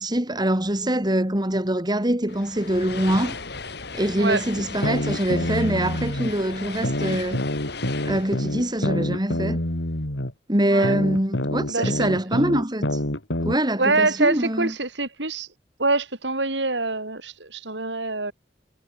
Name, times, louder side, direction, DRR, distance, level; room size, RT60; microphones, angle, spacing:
voice 1, 0.0-3.4 3.9-7.5 8.0-9.6 10.5-13.0 13.4-14.7, right 1 dB, 25° right, 4.0 m, -24 dB
sound 1, 2.3-9.7, left 4 dB, 65° left, 4.6 m, -36 dB
sound 2, 4.6-6.3 6.8-10.3 10.8-13.5, left 1 dB, 80° left, 4.4 m, -26 dB
voice 2, 10.6-11.0 11.7-12.1 13.8-15.5 15.8-18.3, right 3 dB, 75° right, 7.4 m, -25 dB
head